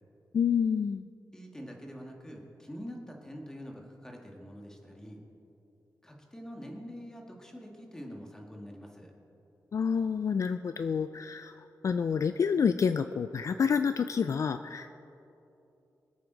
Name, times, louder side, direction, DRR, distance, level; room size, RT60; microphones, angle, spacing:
voice 1, 0.3-1.1 9.7-14.9, left 6 dB, 55° left, 10 dB, 0.3 m, -28 dB
voice 2, 1.3-5.2 6.0-9.1, equal, 10° left, 0 dB, 1.8 m, -45 dB
24.5 x 8.6 x 4.0 m, 2.9 s
wide cardioid pair, 140°, 7 cm